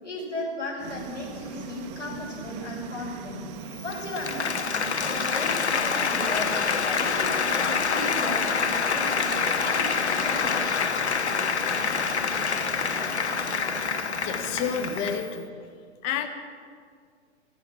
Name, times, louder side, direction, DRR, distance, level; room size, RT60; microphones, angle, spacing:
voice 1, 0.0-3.4 3.8-6.5 6.8-10.6, left 1 dB, 90° left, -4 dB, 4.7 m, -36 dB
sound 1, 0.8-15.2, right 6 dB, 25° right, 0.6 m, -40 dB
Applause, 3.8-15.3, left 6 dB, 70° left, 1.0 m, -26 dB
voice 2, 14.2-15.5 16.0-16.3, left 7 dB, 20° left, 7 dB, 0.6 m, -29 dB
15.5 x 12.5 x 4.7 m, 2.1 s
figure-of-eight pair, 110°, 35 cm